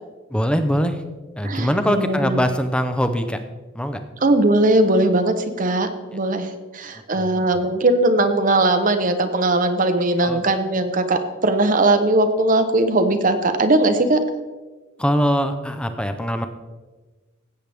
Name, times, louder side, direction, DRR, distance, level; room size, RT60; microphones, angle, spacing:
voice 1, 0.3-1.0 1.4-3.4 3.7-4.0 7.1-7.7 10.2-10.4 15.0-16.5, equal, 5° left, 8 dB, 0.7 m, -22 dB
voice 2, 1.4-2.4 4.2-6.5 6.7-14.2, right 2 dB, 40° right, 8 dB, 0.8 m, -19 dB
17.0 x 8.2 x 3.5 m, 1.3 s
head